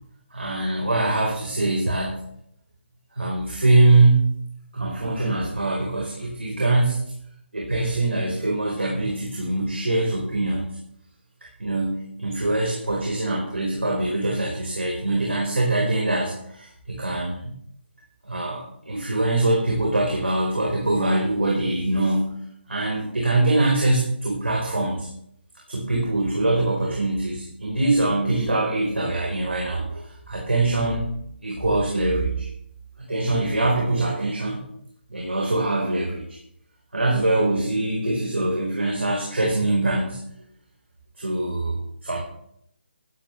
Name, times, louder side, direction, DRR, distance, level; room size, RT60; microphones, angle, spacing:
voice 1, 0.3-2.2 3.1-4.3 4.7-7.0 7.5-10.7 11.6-17.5 18.2-22.4 22.7-25.1 25.7-31.0 31.4-32.5 33.1-34.7 35.1-36.4 36.9-40.2 41.2-42.2, right 2 dB, 80° right, -2 dB, 4.5 m, -23 dB
15.5 x 13.5 x 3.4 m, 0.72 s
figure-of-eight pair, 150°, 6 cm